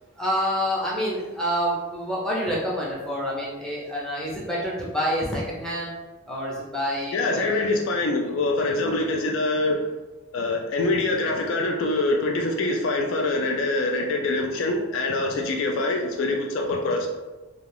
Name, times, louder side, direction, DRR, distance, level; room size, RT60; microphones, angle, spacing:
voice 1, 0.2-5.9 6.3-7.4, equal, 5° left, -6 dB, 0.5 m, -27 dB
voice 2, 7.1-9.9 10.3-17.1, left 2 dB, 65° left, 2 dB, 0.3 m, -24 dB
2.4 x 2.3 x 3.2 m, 1.2 s
head